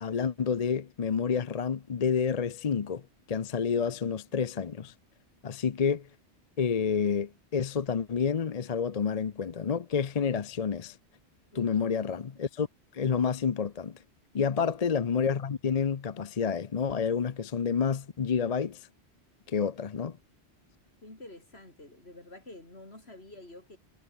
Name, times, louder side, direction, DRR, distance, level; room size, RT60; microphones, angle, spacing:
voice 1, 0.0-3.0 3.3-4.9 5.4-6.1 6.6-11.0 11.6-12.7 12.9-13.9 14.3-18.9 19.5-20.2, left 6 dB, 40° left, 0.7 m, -29 dB
voice 2, 11.5-12.1 14.4-15.0 21.0-23.8, left 2 dB, 65° left, 5.7 m, -49 dB
omnidirectional pair, 1.2 m